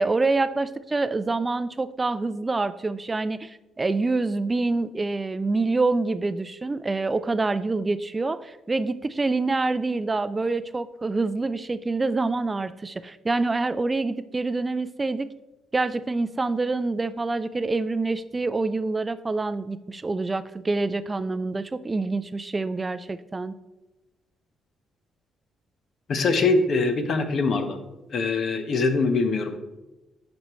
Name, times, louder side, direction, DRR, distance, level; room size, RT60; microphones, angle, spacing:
voice 1, 0.0-15.3 15.7-23.5, right 3 dB, 25° right, 13 dB, 0.3 m, -26 dB
voice 2, 26.1-27.8 28.1-29.6, left 3 dB, 55° left, 8 dB, 0.9 m, -23 dB
10.5 x 5.2 x 3.0 m, 1.0 s
cardioid pair, 90°, 0 cm